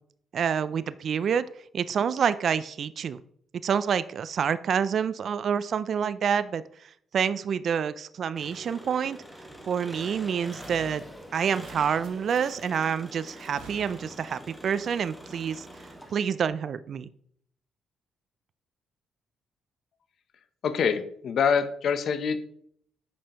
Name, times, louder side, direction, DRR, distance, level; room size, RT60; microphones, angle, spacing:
voice 1, 0.3-1.5 1.7-3.2 3.6-6.6 7.1-9.2 9.7-11.0 11.3-15.6 16.1-17.1, right 7 dB, 55° right, 15 dB, 0.3 m, -27 dB
Engine, 8.4-16.5, equal, ahead, 1.5 m, -45 dB
sound 1, 10.5-10.7 11.0-11.2 11.5-11.7 12.0-12.8 13.3-14.6, right 5 dB, 90° right, 1.1 m, -51 dB
voice 2, 20.6-22.4, left 6 dB, 65° left, 11 dB, 0.7 m, -25 dB
8.5 x 5.5 x 2.9 m, 0.65 s
cardioid pair, 90°, 0 cm